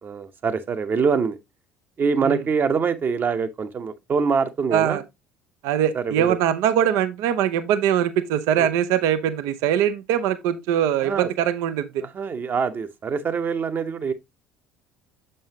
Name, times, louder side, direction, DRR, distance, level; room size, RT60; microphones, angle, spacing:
voice 1, 0.0-1.4 2.0-5.0 5.9-6.4 8.6-8.7 11.0-11.3 12.0-14.1, right 5 dB, 35° right, 1.0 m, -24 dB
voice 2, 4.7-5.0 5.6-12.0, right 10 dB, 60° right, 0.6 m, -22 dB
7.2 x 5.5 x 2.8 m
figure-of-eight pair, 60°, 6 cm